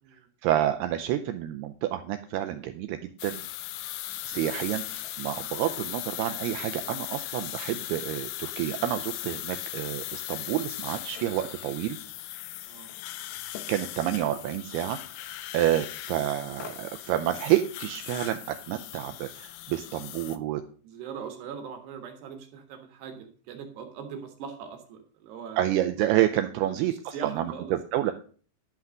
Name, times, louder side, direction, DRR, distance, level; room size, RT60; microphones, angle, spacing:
voice 1, 0.4-3.4 4.3-12.0 13.7-20.6 25.6-28.1, right 12 dB, 90° right, 8 dB, 2.3 m, -29 dB
sound 1, 3.2-20.4, left 15 dB, 80° left, 2.5 m, -38 dB
voice 2, 20.8-25.6 26.6-27.7 28.0-28.1, right 6 dB, 70° right, 5 dB, 3.4 m, -41 dB
12.0 x 5.8 x 6.3 m, 0.42 s
omnidirectional pair, 5.3 m